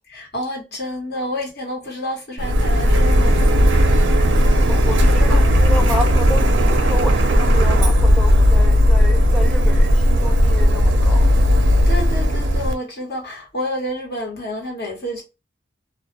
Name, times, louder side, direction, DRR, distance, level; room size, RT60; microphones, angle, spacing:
voice 1, 0.1-3.9 11.9-15.2, equal, 55° left, 1.1 m, -29 dB
Printer, 2.4-12.7, equal, 65° right, 0.5 m, -15 dB
voice 2, 4.3-11.3, left 1 dB, 5° left, 0.4 m, -30 dB
2.3 x 2.2 x 2.9 m
head